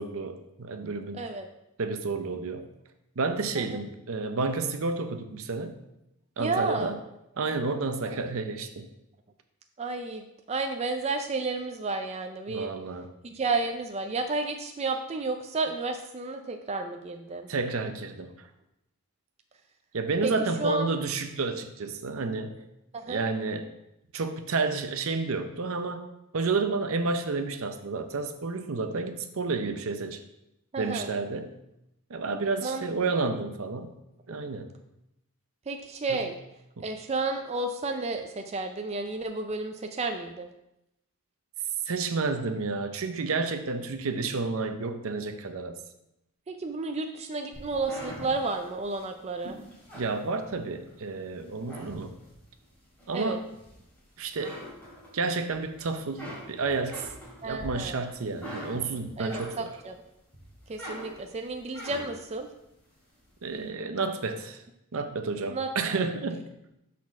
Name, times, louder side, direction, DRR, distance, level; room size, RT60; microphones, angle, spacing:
voice 1, 0.0-1.3 1.8-2.7 3.2-5.8 6.4-7.0 7.4-8.9 12.5-13.1 17.5-18.3 19.9-22.6 23.1-23.7 24.1-26.0 26.3-30.2 30.8-31.5 32.1-33.9 34.3-34.7 36.1-36.3 36.8-36.9 41.9-45.8 49.9-52.1 53.1-53.5 54.2-54.6 55.1-57.1 57.4-59.8 63.4-64.6 64.9-66.5, right 3 dB, 65° right, 8 dB, 0.6 m, -30 dB
voice 2, 6.4-6.9 8.0-8.2 9.8-12.7 13.2-17.5 20.2-20.3 20.6-20.8 22.9-23.2 30.7-31.1 32.6-32.8 35.7-36.4 36.8-40.5 46.5-49.6 53.1-53.4 57.4-58.0 59.2-60.0 60.7-62.5 65.5-65.7, right 3 dB, 30° right, 5 dB, 0.4 m, -31 dB
sound 1, 47.5-50.9 51.4-52.5 53.0-54.0 54.3-55.5 55.9-59.9 60.3-62.3, equal, 5° left, 2.9 m, -43 dB
6.3 x 4.2 x 5.9 m, 0.87 s
head